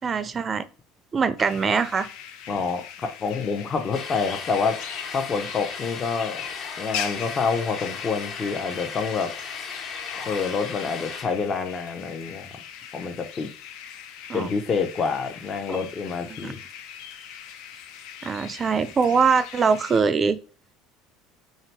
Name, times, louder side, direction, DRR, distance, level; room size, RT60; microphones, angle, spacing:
voice 1, 0.0-0.7 1.1-2.1 14.3-14.5 15.7-15.8 16.4-16.5 18.2-20.4, right 5 dB, 30° right, 14 dB, 0.5 m, -22 dB
sound 1, 1.4-20.0, left 8 dB, 70° left, 0.7 m, -40 dB
voice 2, 2.5-4.8 5.1-6.5 6.8-9.3 10.3-12.5 12.9-13.5 14.3-16.6, left 5 dB, 35° left, 6 dB, 0.8 m, -27 dB
sound 2, 3.9-11.2, left 5 dB, 55° left, 1.4 m, -36 dB
3.4 x 2.8 x 4.5 m, 0.37 s
supercardioid pair, 95°, 0 cm